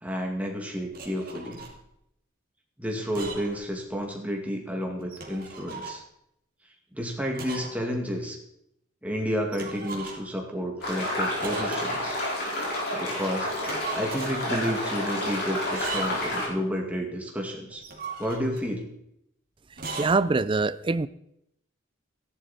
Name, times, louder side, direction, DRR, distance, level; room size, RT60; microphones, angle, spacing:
voice 1, 0.0-1.6 2.8-6.0 6.9-8.4 9.0-12.2 12.9-13.5 13.9-17.8 18.2-18.9, equal, 10° right, 1 dB, 2.3 m, -31 dB
sound 1, 0.9-1.8 3.0-3.6 3.9-4.0 5.0-6.0 7.3-7.8 8.1-8.2 9.5-10.4 11.4-12.1 13.5-14.4 15.6-16.3 17.7-18.7 19.7-20.2, right 4 dB, 45° right, 2.6 m, -38 dB
sound 2, 10.8-16.5, left 1 dB, 55° left, 4.8 m, -30 dB
voice 2, 19.9-21.1, right 3 dB, 25° right, 16 dB, 0.4 m, -24 dB
14.0 x 11.0 x 4.4 m, 0.77 s
head